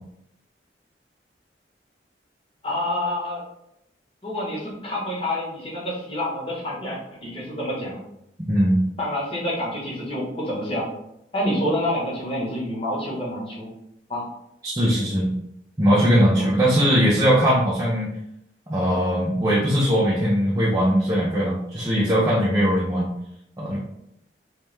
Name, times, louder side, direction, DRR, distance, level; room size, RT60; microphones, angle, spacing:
voice 1, 2.6-3.4 4.2-8.0 9.0-10.9 11.3-13.7 14.1-14.3 16.4-16.5, left 1 dB, 30° left, -5 dB, 1.2 m, -28 dB
voice 2, 8.5-8.8 14.6-15.3 15.8-18.1 18.7-23.1 23.6-23.8, equal, 20° right, -6 dB, 0.5 m, -20 dB
3.2 x 3.1 x 3.3 m, 0.79 s
head